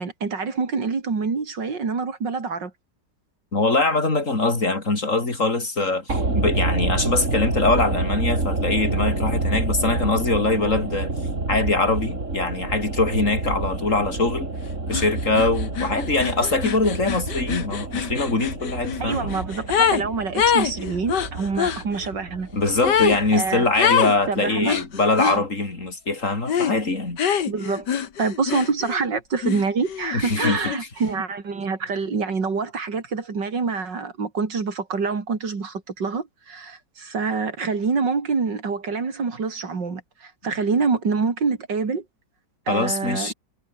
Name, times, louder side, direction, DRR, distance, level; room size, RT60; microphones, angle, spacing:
voice 1, 0.0-2.7 10.6-10.9 19.0-22.5 23.3-23.7 24.3-24.8 25.2-25.4 27.5-27.9 28.2-42.0 42.7-43.3, right 4 dB, 85° right, 3.7 m, -26 dB
voice 2, 3.5-11.1 11.5-14.5 14.9-19.4 22.5-27.2 30.1-30.6 42.7-43.3, left 3 dB, 45° left, 4.5 m, -23 dB
sound 1, 6.1-24.3 24.5-24.6, right 2 dB, 45° right, 4.4 m, -28 dB
sound 2, 14.9-15.1 15.3-20.0 20.3-21.8 22.8-23.2 23.8-24.2 24.6-25.4 26.5-26.8 27.2-29.0 29.4-30.8, left 8 dB, 75° left, 2.1 m, -24 dB
omnidirectional pair, 1.9 m